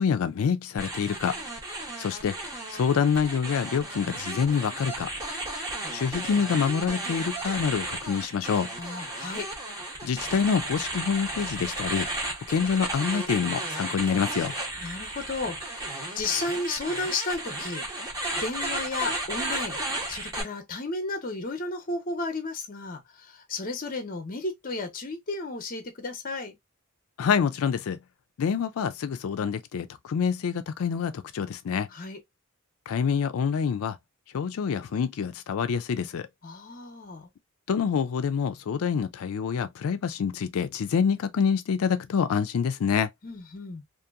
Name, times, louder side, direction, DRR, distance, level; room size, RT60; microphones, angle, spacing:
voice 1, 0.0-1.4 2.0-2.4 2.7-5.1 5.9-8.7 10.0-12.1 12.5-14.5 27.2-28.0 28.4-31.9 32.9-34.0 34.3-36.3 37.7-43.1, left 6 dB, 80° left, 0.4 m, -26 dB
sound 1, 0.8-20.4, right 1 dB, 15° right, 0.9 m, -34 dB
voice 2, 8.8-9.5 14.8-17.9 18.4-19.8 20.1-26.6 31.9-32.2 36.4-37.3 43.2-43.8, left 3 dB, 40° left, 0.7 m, -33 dB
2.8 x 2.6 x 2.4 m
head